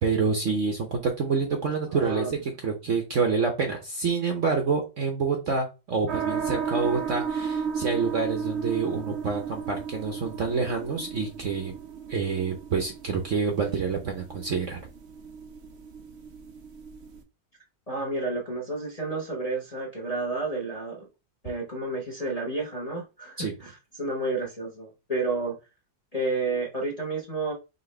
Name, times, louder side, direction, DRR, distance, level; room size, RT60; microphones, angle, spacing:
voice 1, 0.0-11.7 12.1-14.8 23.4-23.5, right 5 dB, 55° right, 3 dB, 0.9 m, -27 dB
voice 2, 1.9-2.4 17.9-21.1 21.4-25.5 26.1-27.5, right 2 dB, 30° left, -1 dB, 0.8 m, -31 dB
sound 1, 6.1-17.2, right 6 dB, 85° right, 0.5 m, -34 dB
5.2 x 3.0 x 3.2 m, 0.28 s
omnidirectional pair, 2.0 m